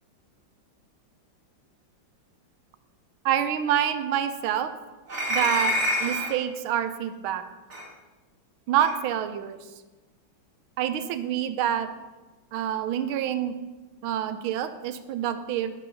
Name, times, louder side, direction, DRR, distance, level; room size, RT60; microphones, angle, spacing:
voice 1, 3.2-4.7 5.3-7.4 8.7-9.6 10.8-11.9 12.5-13.5 14.0-15.7, right 10 dB, 90° right, 10 dB, 1.5 m, -27 dB
sound 1, 5.1-6.4 7.7-7.9 8.8-8.9, equal, 35° right, 1.8 m, -27 dB
10.0 x 5.5 x 5.3 m, 1.2 s
omnidirectional pair, 2.2 m